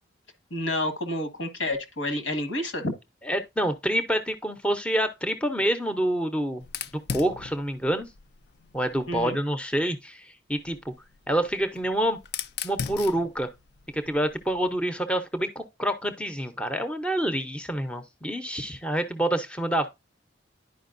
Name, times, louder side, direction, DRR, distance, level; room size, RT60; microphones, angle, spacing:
voice 1, 0.5-2.9 9.1-9.4, left 1 dB, 80° left, 1.6 m, -29 dB
voice 2, 3.3-6.6 7.1-8.1 8.7-10.9 11.3-12.2 12.6-13.5 13.9-19.9, right 1 dB, 5° left, 0.6 m, -27 dB
Fire, 6.6-9.4 10.5-14.7, left 7 dB, 55° left, 0.4 m, -39 dB
10.5 x 5.0 x 2.5 m
head